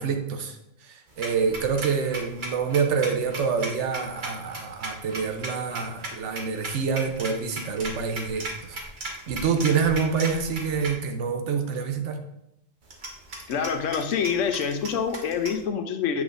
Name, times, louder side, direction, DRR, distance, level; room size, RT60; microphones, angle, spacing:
voice 1, 0.0-8.8 9.3-12.2, right 5 dB, 75° right, 6 dB, 1.1 m, -27 dB
sound 1, 1.1-10.9 12.8-15.6, right 2 dB, 45° right, 1.1 m, -37 dB
voice 2, 13.5-16.2, left 7 dB, 90° left, 7 dB, 1.0 m, -26 dB
7.9 x 5.9 x 2.6 m, 0.82 s
omnidirectional pair, 1.3 m